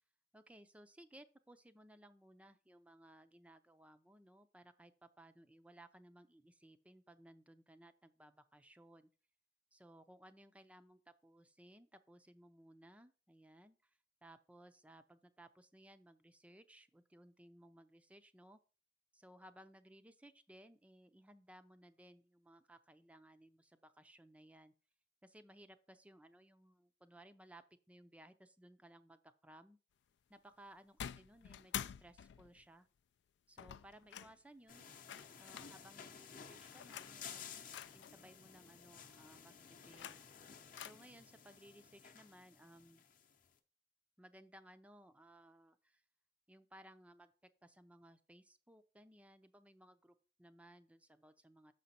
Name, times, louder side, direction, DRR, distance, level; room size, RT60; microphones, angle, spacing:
voice 1, 0.3-9.1 9.7-18.6 19.1-24.7 25.2-29.8 30.3-32.9 33.5-34.9 35.4-40.2 40.8-43.0 44.2-46.0 46.5-47.3 47.6-51.7, right 1 dB, 10° right, 10 dB, 0.4 m, -61 dB
sound 1, 31.0-32.6 33.6-34.4 35.1-35.7 36.8-37.2 37.7-38.1 39.7-40.4 40.8-40.9, left 10 dB, 80° left, 0.3 m, -47 dB
sound 2, 34.7-43.5, left 7 dB, 50° left, 0.7 m, -55 dB
6.7 x 5.1 x 4.2 m, 0.36 s
head